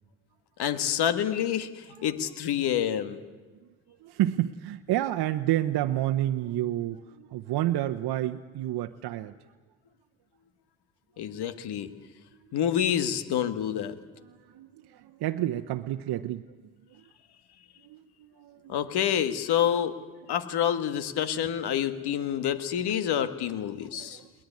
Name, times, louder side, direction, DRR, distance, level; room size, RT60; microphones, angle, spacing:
voice 1, 0.6-3.2 11.2-11.9 12.5-14.0 18.7-20.0 20.3-24.2, left 9 dB, 65° left, 1.8 m, -28 dB
voice 2, 3.9-9.3 14.2-17.0 17.8-18.7 23.0-23.1 24.0-24.4, right 13 dB, 65° right, 0.9 m, -30 dB
21.5 x 19.0 x 9.7 m
supercardioid pair, 65°, 41 cm